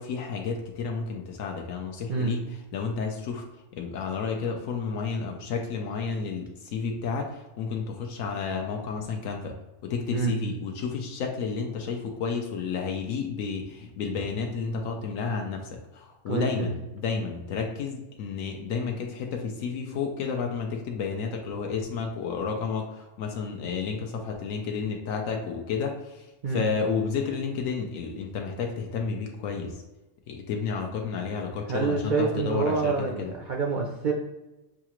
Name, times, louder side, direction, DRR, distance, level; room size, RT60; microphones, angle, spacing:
voice 1, 0.0-2.4 2.7-3.4 3.8-9.5 9.8-29.8 30.3-32.9 33.2-33.3, left 5 dB, 85° left, 2 dB, 1.0 m, -31 dB
voice 2, 16.3-16.7 26.4-26.7 31.7-34.1, right 3 dB, 60° right, 1 dB, 0.5 m, -27 dB
6.5 x 2.4 x 2.9 m, 1.0 s
omnidirectional pair, 1.4 m